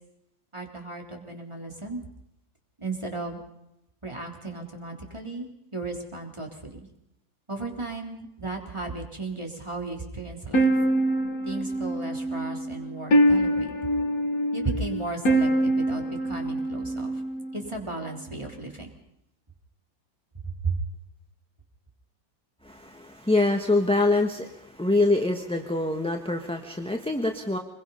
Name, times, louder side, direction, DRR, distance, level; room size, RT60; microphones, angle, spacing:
voice 1, 0.5-2.0 2.8-3.4 4.0-6.8 7.5-10.7 11.4-13.7 14.5-17.1 17.5-18.9 20.4-20.8, right 3 dB, 15° right, 2 dB, 3.4 m, -35 dB
sound 1, 10.5-17.7, right 1 dB, 50° left, 2.1 m, -25 dB
voice 2, 22.6-27.6, left 2 dB, 5° left, 3 dB, 1.0 m, -25 dB
26.0 x 21.5 x 5.6 m, 0.85 s
omnidirectional pair, 2.0 m